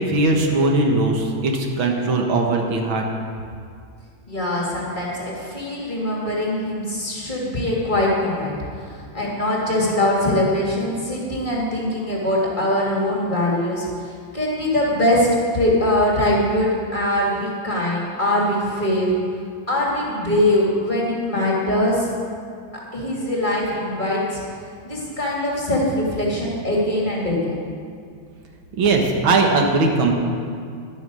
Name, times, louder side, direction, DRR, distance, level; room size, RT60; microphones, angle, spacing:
voice 1, 0.0-3.0 28.7-30.1, right 2 dB, 85° right, 1 dB, 2.1 m, -19 dB
voice 2, 4.3-19.1 19.7-22.1 22.9-24.4 24.8-27.6, left 1 dB, 25° left, -4 dB, 2.4 m, -22 dB
11.5 x 9.1 x 6.3 m, 2.2 s
omnidirectional pair, 2.2 m